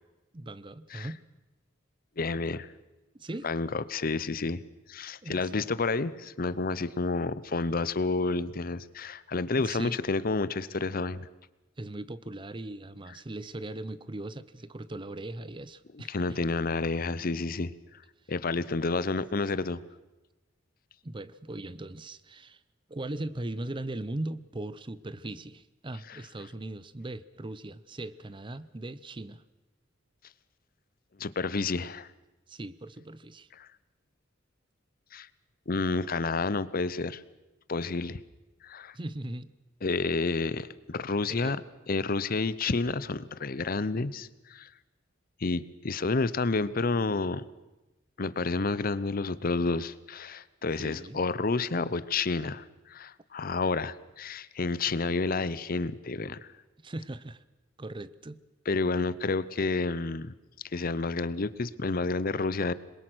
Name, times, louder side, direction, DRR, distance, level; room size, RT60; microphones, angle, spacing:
voice 1, 0.3-1.2 3.1-3.5 5.2-5.7 9.6-10.0 11.8-16.4 21.0-22.6 22.9-29.4 32.5-33.5 38.9-39.5 40.3-40.4 41.3-41.6 50.8-51.2 56.8-57.4 57.8-58.4, right 2 dB, 25° right, 17 dB, 0.7 m, -39 dB
voice 2, 2.2-2.7 3.4-4.6 4.9-11.3 15.9-17.7 18.3-19.8 26.1-26.2 31.2-32.1 33.6-33.7 35.1-35.3 35.7-37.2 37.7-38.2 38.6-38.9 39.8-41.6 41.9-44.7 45.4-47.4 48.2-56.4 58.7-60.3 60.7-62.7, left 3 dB, 50° left, 17 dB, 0.7 m, -30 dB
26.5 x 22.0 x 6.2 m, 1.1 s
head